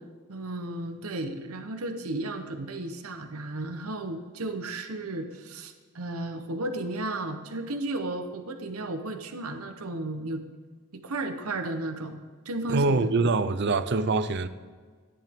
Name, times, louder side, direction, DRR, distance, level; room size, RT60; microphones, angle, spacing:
voice 1, 0.3-10.4 10.9-12.2 12.4-13.1, right 2 dB, 85° right, 1.0 m, -34 dB
voice 2, 12.7-14.5, right 3 dB, 50° right, 0.6 m, -24 dB
13.5 x 10.0 x 3.6 m
head